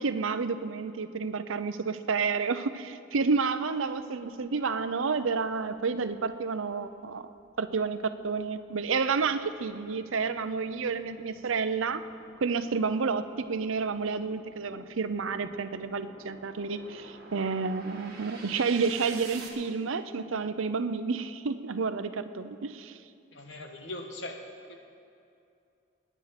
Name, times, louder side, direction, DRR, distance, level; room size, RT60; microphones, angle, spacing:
voice 1, 0.0-7.3 7.6-12.0 12.4-23.0, right 4 dB, 80° right, 11 dB, 0.6 m, -30 dB
sound 1, 4.8-4.9 5.4-19.5, right 3 dB, 50° right, 2.0 m, -50 dB
voice 2, 23.3-24.7, left 1 dB, 65° left, 4 dB, 1.5 m, -40 dB
21.5 x 9.2 x 5.9 m, 2.5 s
head